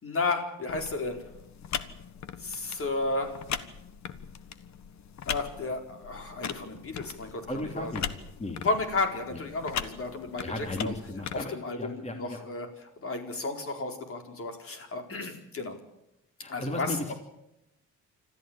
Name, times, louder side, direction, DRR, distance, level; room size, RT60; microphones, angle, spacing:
voice 1, 0.0-1.3 2.4-3.4 5.2-8.1 8.6-10.9 11.3-15.8 16.5-17.1, left 3 dB, 45° left, 5 dB, 4.5 m, -33 dB
sound 1, 0.7-11.4, left 8 dB, 65° left, 1.5 m, -39 dB
voice 2, 7.5-8.0 8.4-8.6 9.3-9.4 10.4-12.4 16.4-17.1, left 1 dB, 20° left, 4 dB, 2.9 m, -35 dB
26.0 x 14.0 x 8.9 m, 0.86 s
cardioid pair, 90°, 30 cm